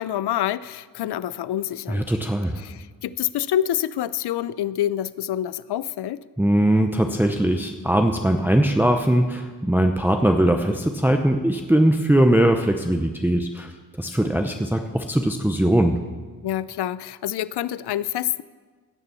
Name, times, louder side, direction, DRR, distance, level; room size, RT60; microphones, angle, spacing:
voice 1, 0.0-2.1 2.6-6.2 16.4-18.4, left 11 dB, 75° left, 17 dB, 0.5 m, -27 dB
voice 2, 1.9-2.6 6.4-13.7 14.0-15.9, right 1 dB, 5° right, 4 dB, 0.7 m, -20 dB
16.5 x 6.8 x 6.9 m, 1.4 s
wide cardioid pair, 95°, 40 cm